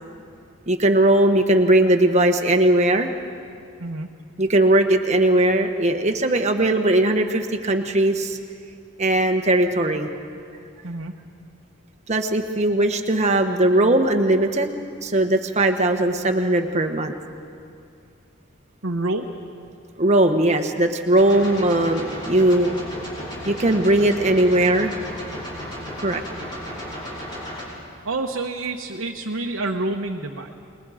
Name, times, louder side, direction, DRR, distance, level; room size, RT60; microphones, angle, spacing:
voice 1, 0.7-3.1 4.4-8.4 9.0-10.1 12.1-14.7 15.0-17.2 20.0-22.8 23.4-25.0 26.0-26.2, right 1 dB, 35° right, 5 dB, 1.2 m, -19 dB
voice 2, 18.8-19.3 28.0-30.5, right 2 dB, 70° right, 0 dB, 1.1 m, -27 dB
sound 1, 21.2-27.6, equal, 20° left, 6.3 m, -34 dB
29.5 x 20.5 x 5.0 m, 2.4 s
head